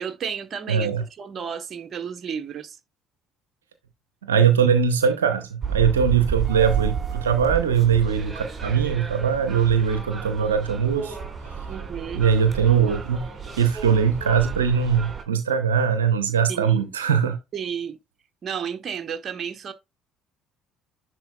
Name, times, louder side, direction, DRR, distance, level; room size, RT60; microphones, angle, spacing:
voice 1, 0.0-0.9 1.2-2.8 11.7-12.3 16.5-16.9 17.5-18.0 18.4-19.7, right 7 dB, 45° right, 1.2 m, -32 dB
voice 2, 0.7-1.0 4.2-11.2 12.1-13.3 13.6-17.4, right 7 dB, 80° right, 0.8 m, -21 dB
sound 1, 5.6-15.2, right 7 dB, 25° right, 2.7 m, -31 dB
10.5 x 4.5 x 2.2 m
figure-of-eight pair, 55°, 0 cm